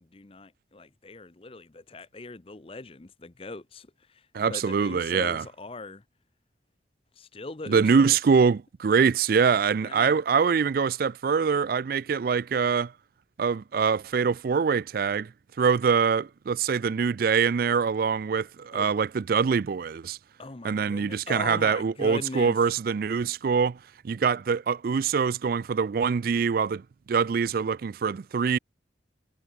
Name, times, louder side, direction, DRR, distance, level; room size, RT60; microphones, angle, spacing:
voice 1, 0.0-6.0 7.2-8.2 9.8-10.2 18.7-18.9 20.4-22.6, left 3 dB, 30° left, 0.7 m, -40 dB
voice 2, 4.3-5.5 7.7-12.9 13.4-15.3 15.6-20.2 20.6-23.8 24.0-28.6, right 6 dB, 50° right, 0.3 m, -24 dB
head